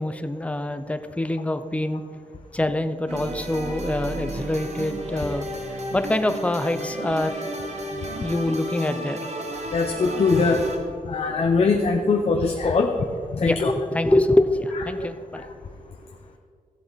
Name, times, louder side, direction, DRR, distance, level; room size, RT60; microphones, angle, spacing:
voice 1, 0.0-2.0 2.5-5.5 5.9-7.5 8.1-9.2 13.4-15.4, left 1 dB, 10° left, 9 dB, 0.5 m, -25 dB
sound 1, 3.1-10.8, right 1 dB, 55° right, 1.4 m, -32 dB
voice 2, 9.4-10.6 11.0-12.9 13.3-13.7 15.0-15.1 15.3-15.5, left 4 dB, 45° left, 3 dB, 0.8 m, -22 dB
15.5 x 7.7 x 4.0 m, 2.2 s
wide cardioid pair, 130°, 14 cm